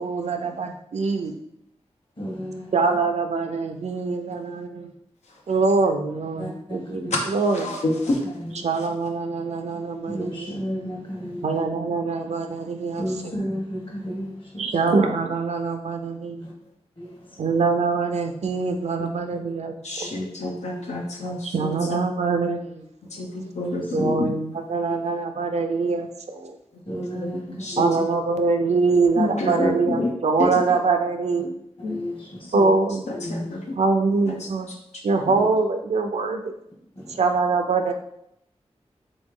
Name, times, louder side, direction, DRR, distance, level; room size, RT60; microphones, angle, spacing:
voice 1, 0.0-1.3 2.7-4.9 5.5-7.8 8.6-10.5 11.4-13.3 14.6-16.4 17.4-20.1 21.4-22.9 23.9-26.6 27.8-31.5 32.5-33.2 33.7-34.7 35.0-36.5 37.1-37.9, right 4 dB, 75° right, 6 dB, 0.5 m, -24 dB
voice 2, 2.2-2.7 6.4-6.8 7.0-7.2 8.3-8.5 10.1-11.5 12.9-14.6 16.4-16.5 17.0-17.4 19.0-19.1 20.0-20.2 20.8-21.3 24.0-24.1 26.8-28.0 31.9-32.7 33.1-33.5 35.3-35.5 36.9-37.2, equal, 50° left, -3 dB, 1.6 m, -33 dB
voice 3, 7.1-8.2 19.8-22.0 23.1-24.3 26.9-27.8 29.2-30.1 30.4-30.5 31.8-32.0 32.5-32.6 33.1-33.7 34.3-34.4, left 2 dB, 80° left, -1 dB, 0.6 m, -28 dB
3.5 x 3.0 x 3.7 m, 0.76 s
wide cardioid pair, 60°, 11 cm